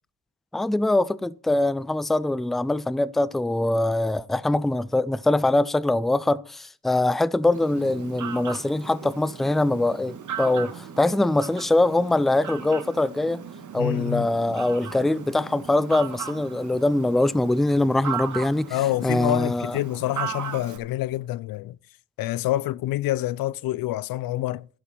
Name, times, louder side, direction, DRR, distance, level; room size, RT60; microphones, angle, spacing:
voice 1, 0.5-13.4 13.7-19.8, left 2 dB, ahead, 0.4 m, -23 dB
Fowl, 7.5-20.8, right 7 dB, 55° right, 1.7 m, -37 dB
voice 2, 13.8-14.3 18.7-21.8 22.2-24.7, left 15 dB, 75° left, 0.5 m, -27 dB
11.0 x 7.0 x 5.8 m
cardioid pair, 75°, 35 cm